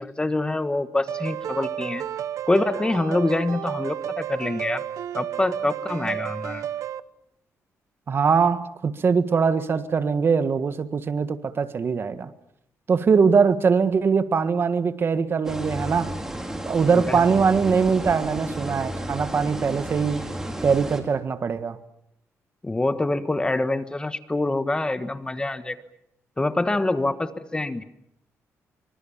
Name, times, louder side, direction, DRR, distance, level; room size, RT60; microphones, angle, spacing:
voice 1, 0.0-2.0 2.5-4.8 5.1-6.6 17.1-17.2 22.6-25.8 26.4-27.8, left 2 dB, 15° left, 1.4 m, -25 dB
sound 1, 1.1-7.0, right 10 dB, 80° right, 1.0 m, -32 dB
voice 2, 8.1-12.3 12.9-16.1 16.6-20.3 20.6-21.8, right 5 dB, 45° right, 1.5 m, -22 dB
sound 2, 15.4-21.0, right 1 dB, 10° right, 4.3 m, -32 dB
25.5 x 25.0 x 7.3 m
cardioid pair, 110°, 6 cm